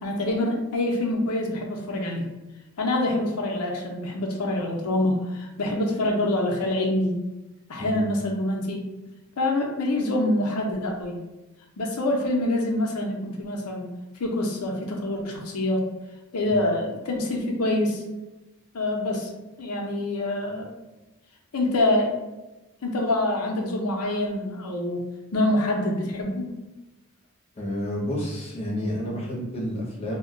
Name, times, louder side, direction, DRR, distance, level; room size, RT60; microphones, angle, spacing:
voice 1, 0.0-2.2 2.8-7.1 7.7-8.9 9.4-11.2 11.8-13.8 14.2-15.9 16.3-18.0 18.7-19.3 19.6-20.7 21.5-22.1 22.8-25.0 25.3-26.5, left 1 dB, 85° left, 1 dB, 0.6 m, -25 dB
voice 2, 27.6-30.2, equal, 25° left, -4 dB, 0.7 m, -30 dB
2.2 x 2.1 x 3.6 m, 1.0 s
head